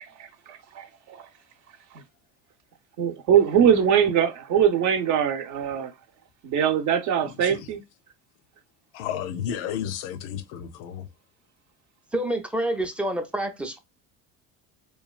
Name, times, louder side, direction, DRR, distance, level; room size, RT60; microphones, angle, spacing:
voice 1, 0.2-1.2 1.9-2.0 3.0-5.9 6.4-7.8, right 8 dB, 60° right, 0.7 m, -22 dB
voice 2, 8.9-11.1, left 9 dB, 90° left, 0.5 m, -32 dB
voice 3, 12.1-13.8, right 1 dB, 5° right, 0.4 m, -27 dB
3.0 x 2.3 x 2.3 m
supercardioid pair, 105°, 34 cm